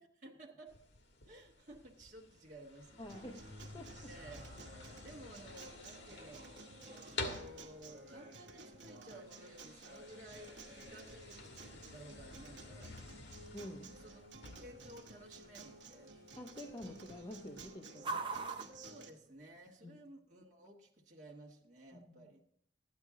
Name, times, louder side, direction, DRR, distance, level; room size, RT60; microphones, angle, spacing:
voice 1, 0.2-0.8 1.3-3.1 4.1-4.4 4.8-6.6 7.0-12.9 14.0-14.2 14.5-16.1 18.8-22.4, right 1 dB, 45° right, -2 dB, 1.3 m, -55 dB
sound 1, 0.7-17.7, left 3 dB, 70° left, 1.6 m, -51 dB
voice 2, 3.0-3.5 3.7-4.1 13.5-14.0 16.4-18.3 19.8-20.0 21.9-22.3, left 1 dB, 25° left, 2 dB, 0.7 m, -48 dB
Acoustic guitar, 3.1-19.1, right 3 dB, 75° right, 1.2 m, -54 dB
sound 2, 5.0-19.9, right 4 dB, 30° right, 0.6 m, -51 dB
13.0 x 9.6 x 3.7 m, 0.68 s
head